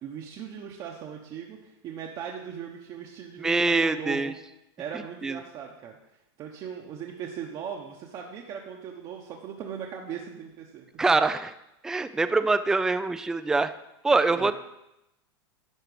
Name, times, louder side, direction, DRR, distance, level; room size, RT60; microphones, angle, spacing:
voice 1, 0.0-4.3 4.8-6.0 6.4-11.0 12.3-12.4 14.3-14.5, right 8 dB, 35° right, 0 dB, 1.0 m, -39 dB
voice 2, 3.4-4.3 5.2-5.4 11.0-11.5 11.8-13.7 14.0-14.5, right 3 dB, 5° right, 11 dB, 0.3 m, -24 dB
11.0 x 4.5 x 6.8 m, 0.87 s
supercardioid pair, 140°, 13 cm